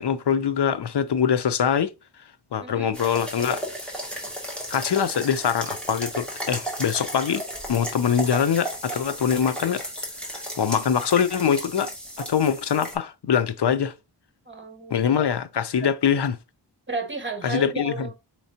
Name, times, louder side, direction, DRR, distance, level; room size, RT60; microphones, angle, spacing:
voice 1, 0.0-1.9 2.5-3.6 4.7-7.4 7.7-9.9 10.6-11.9 12.3-13.9 14.9-16.4 17.4-18.1, left 8 dB, 70° left, 0.6 m, -23 dB
voice 2, 2.6-2.9 14.5-15.0 15.8-15.9 16.9-18.1, right 3 dB, 25° right, 1.5 m, -32 dB
sound 1, 2.9-13.0, right 1 dB, ahead, 1.8 m, -34 dB
4.6 x 3.6 x 2.7 m
wide cardioid pair, 55°, 43 cm